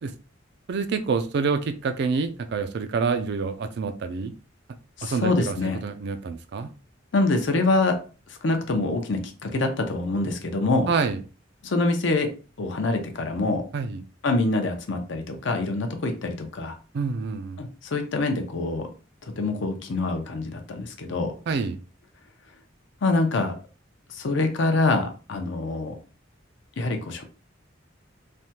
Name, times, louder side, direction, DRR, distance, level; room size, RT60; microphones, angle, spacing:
voice 1, 0.7-4.3 5.0-5.6 5.8-6.7 10.9-11.2 13.7-14.0 16.9-17.6 21.5-21.8, right 5 dB, 60° right, 0.4 m, -27 dB
voice 2, 5.0-5.8 7.1-8.0 8.4-10.9 11.6-12.3 12.6-13.6 14.2-16.7 17.6-18.8 19.4-21.3 23.0-23.5 24.1-25.9 26.8-27.2, left 2 dB, 65° left, 0.6 m, -25 dB
3.3 x 2.2 x 2.8 m
head